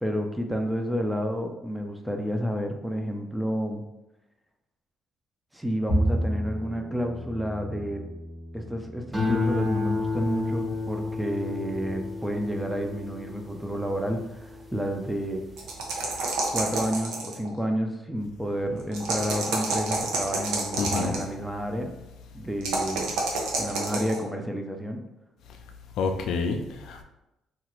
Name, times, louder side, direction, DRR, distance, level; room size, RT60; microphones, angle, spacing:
voice 1, 0.0-3.8 5.5-8.0 8.5-15.4 16.5-21.9 22.3-23.1 23.6-25.0, equal, 5° right, 3 dB, 0.4 m, -30 dB
Bowed string instrument, 5.9-12.2, right 1 dB, 65° right, 1.1 m, -33 dB
sound 1, 9.1-15.7 16.1-16.6, left 3 dB, 20° right, 1.0 m, -31 dB
sound 2, 15.6-17.5 18.9-21.2 22.6-24.2, right 3 dB, 85° right, 0.6 m, -28 dB
voice 2, 20.8-21.2 26.0-27.0, left 4 dB, 75° left, 5 dB, 0.3 m, -28 dB
2.8 x 2.4 x 3.0 m, 0.93 s
cardioid pair, 85°, 0 cm